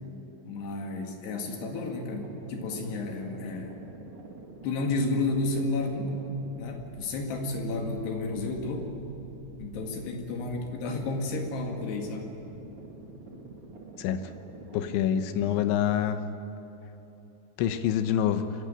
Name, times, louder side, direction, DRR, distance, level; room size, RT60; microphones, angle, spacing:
voice 1, 0.5-3.8 4.6-6.2 6.6-8.9 9.6-12.3, left 2 dB, 65° left, 2 dB, 4.0 m, -31 dB
sound 1, 1.6-15.7, right 2 dB, 45° right, 2.0 m, -47 dB
voice 2, 14.7-16.2 17.6-18.5, left 10 dB, 80° left, 9 dB, 3.3 m, -26 dB
25.5 x 15.5 x 8.8 m, 3.0 s
omnidirectional pair, 5.4 m